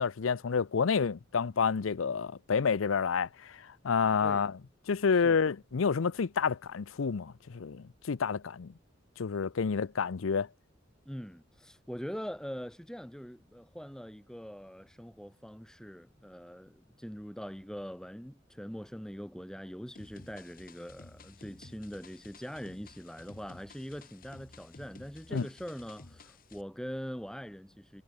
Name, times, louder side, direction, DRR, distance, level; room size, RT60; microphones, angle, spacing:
voice 1, 0.0-4.6 4.9-8.7 9.2-10.5 25.3-25.5, left 5 dB, 85° left, 0.6 m, -29 dB
voice 2, 11.0-28.0, equal, 5° left, 1.3 m, -43 dB
sound 1, 20.0-26.6, left 3 dB, 45° left, 1.3 m, -54 dB
head